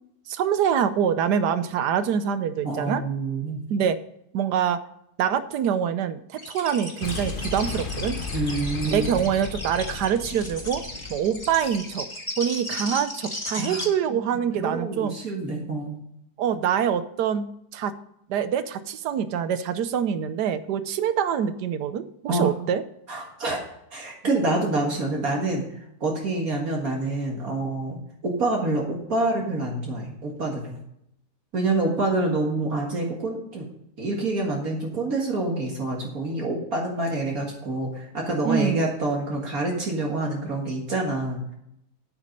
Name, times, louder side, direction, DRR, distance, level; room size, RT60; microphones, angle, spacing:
voice 1, 0.3-3.0 3.7-4.0 4.3-4.8 5.2-8.2 8.9-10.8 11.1-12.1 12.4-15.1 16.4-17.5 17.7-17.9 18.3-22.8 38.4-38.9, right 8 dB, 85° right, 12 dB, 1.4 m, -25 dB
voice 2, 2.6-3.6 8.3-9.1 13.6-13.8 14.1-14.2 14.6-16.0 22.3-22.5 23.1-23.6 23.9-25.6 26.0-30.8 31.5-33.7 34.0-41.4, right 2 dB, 60° right, -1 dB, 2.2 m, -27 dB
sound 1, 6.4-13.9, left 1 dB, 15° left, 2.8 m, -35 dB
Boom, 7.0-11.9, left 4 dB, 45° left, 0.7 m, -35 dB
9.7 x 8.6 x 5.3 m, 0.78 s
omnidirectional pair, 1.7 m